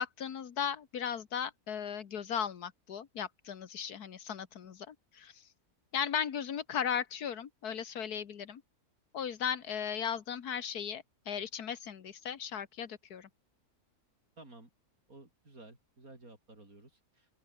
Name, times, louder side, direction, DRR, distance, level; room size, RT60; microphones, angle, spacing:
voice 1, 0.0-5.3 5.9-8.6 9.1-13.3, left 8 dB, 85° left, 1.9 m, -36 dB
voice 2, 14.4-14.7 15.1-17.3, right 2 dB, 65° right, 6.3 m, -54 dB
open air
omnidirectional pair, 1.6 m